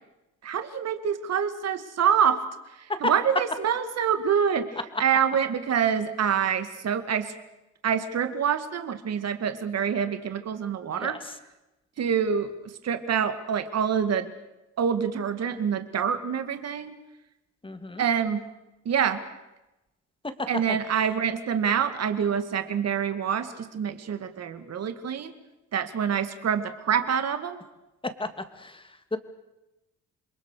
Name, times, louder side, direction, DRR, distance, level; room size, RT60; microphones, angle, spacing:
voice 1, 0.4-2.4 2.8-7.3 7.8-11.2 12.0-14.3 14.8-17.0 18.0-18.5 18.9-19.2 20.5-25.3 25.7-27.6, right 7 dB, 55° right, 9 dB, 2.1 m, -26 dB
voice 2, 17.6-18.0 28.2-28.3 28.6-29.2, left 2 dB, 15° left, 8 dB, 2.6 m, -35 dB
28.5 x 22.0 x 6.8 m, 0.97 s
cardioid pair, 90°, 30 cm